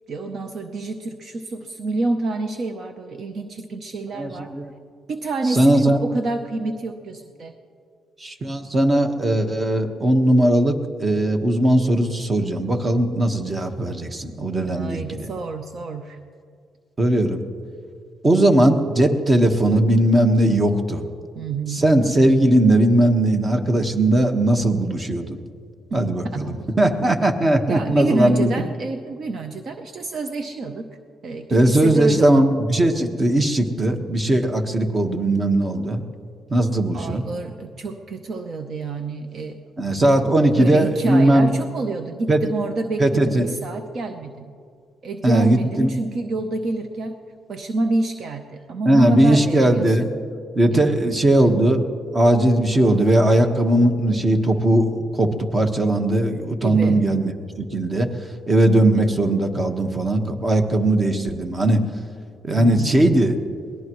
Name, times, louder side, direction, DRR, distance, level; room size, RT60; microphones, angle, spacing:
voice 1, 0.1-4.5 5.1-7.5 14.6-16.2 21.3-21.8 27.7-30.9 31.2-32.5 36.9-39.6 40.2-44.5 45.0-47.1 47.5-50.1 50.7-51.1 56.6-57.0 62.5-63.0, right 3 dB, 55° right, 6 dB, 0.8 m, -28 dB
voice 2, 4.2-4.7 5.5-6.0 8.2-15.3 17.0-17.4 18.2-21.0 21.7-25.4 25.9-28.5 31.5-36.0 36.5-37.2 39.8-41.5 42.3-42.4 43.0-43.5 45.2-45.9 48.9-50.1 50.5-51.8 52.1-57.3 57.6-58.1 58.5-61.9 62.5-63.4, right 1 dB, 30° right, 6 dB, 1.4 m, -18 dB
22.5 x 18.5 x 3.1 m, 2.2 s
cardioid pair, 90°, 0 cm